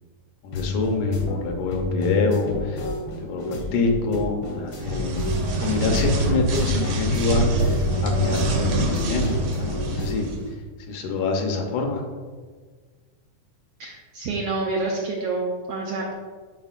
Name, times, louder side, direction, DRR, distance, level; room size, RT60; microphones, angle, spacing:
voice 1, 0.4-2.9 3.2-5.3 5.6-7.8 8.0-10.3 10.9-12.0, left 3 dB, 90° left, 3 dB, 2.3 m, -26 dB
sound 1, 0.5-10.1, left 2 dB, 75° left, 1.1 m, -30 dB
sound 2, 4.7-10.4, right 2 dB, 70° right, 1.3 m, -25 dB
voice 2, 13.8-16.1, right 3 dB, 90° right, -1 dB, 1.3 m, -28 dB
9.3 x 4.4 x 2.5 m, 1.5 s
omnidirectional pair, 3.4 m